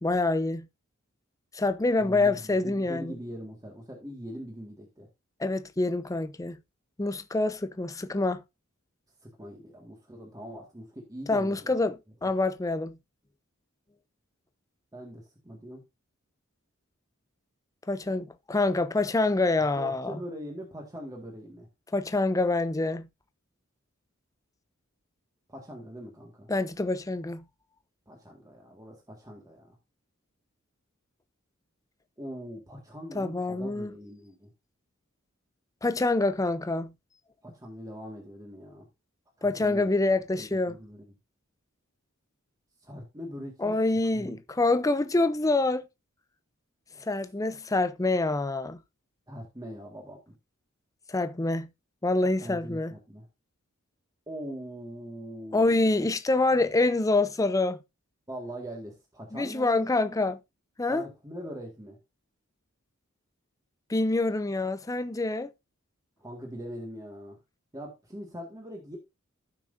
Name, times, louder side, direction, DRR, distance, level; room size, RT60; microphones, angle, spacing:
voice 1, 0.0-0.7 1.5-3.1 5.4-6.6 7.0-8.4 11.3-12.0 12.2-13.0 17.9-20.2 21.9-23.1 26.5-27.4 33.1-33.9 35.8-36.9 39.4-40.7 43.6-45.9 47.0-48.8 51.1-51.7 52.0-52.9 55.5-57.8 59.3-60.4 60.8-61.0 63.9-65.5, left 2 dB, 15° left, 0.5 m, -26 dB
voice 2, 2.0-2.4 2.6-5.1 9.2-11.7 14.9-15.8 19.8-21.7 25.5-26.5 28.1-29.8 32.2-34.5 37.4-38.9 39.4-39.9 40.4-41.0 42.8-43.7 44.1-44.4 49.3-50.3 52.4-53.3 54.3-56.1 56.6-56.7 58.3-60.2 60.9-62.0 66.2-67.4 67.7-69.0, equal, 15° right, 1.8 m, -42 dB
15.0 x 6.1 x 2.6 m
head